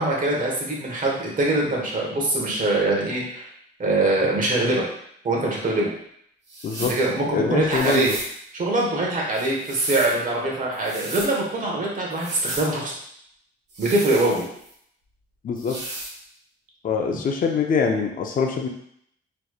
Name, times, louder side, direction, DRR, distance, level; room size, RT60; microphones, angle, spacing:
voice 1, 0.0-3.5 3.8-4.8 5.2-5.9 6.9-8.1 8.5-12.9 13.8-14.4, right 2 dB, 40° right, -3 dB, 1.3 m, -23 dB
sound 1, 6.5-7.0 7.7-8.3 9.3-10.2 10.7-11.3 12.1-12.7 13.7-14.7 15.6-16.2, right 2 dB, 60° right, 1.3 m, -35 dB
voice 2, 7.3-8.2 15.4-15.8 16.8-18.7, left 5 dB, 45° left, 2 dB, 0.5 m, -24 dB
4.2 x 3.1 x 2.4 m, 0.68 s
cardioid pair, 90°, 20 cm